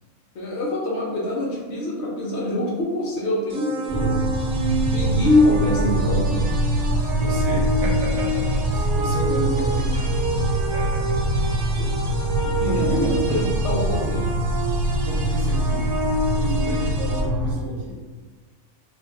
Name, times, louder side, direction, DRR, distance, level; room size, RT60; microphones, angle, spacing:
voice 1, 0.3-4.2 4.9-6.4 11.7-11.9 12.4-14.3, left 1 dB, 65° left, -3 dB, 0.8 m, -24 dB
sound 1, 3.5-17.2, right 2 dB, 90° right, 1.0 m, -29 dB
sound 2, 3.9-17.5, right 1 dB, 20° right, 0.9 m, -24 dB
sound 3, 6.5-12.9, equal, 20° left, 0.9 m, -36 dB
voice 2, 7.1-11.7 12.7-13.4 15.0-15.9 16.3-18.0, right 1 dB, 65° right, -3 dB, 1.0 m, -32 dB
2.5 x 2.3 x 4.0 m, 1.4 s
omnidirectional pair, 1.4 m